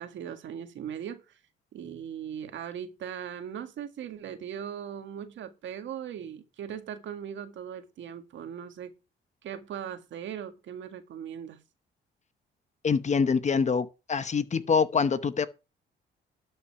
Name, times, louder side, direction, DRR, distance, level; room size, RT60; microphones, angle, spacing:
voice 1, 0.0-1.4 1.7-8.9 9.4-11.6, right 9 dB, 70° right, 1.8 m, -39 dB
voice 2, 12.8-15.5, left 5 dB, 35° left, 0.9 m, -25 dB
12.0 x 5.7 x 5.8 m
cardioid pair, 90°, 20 cm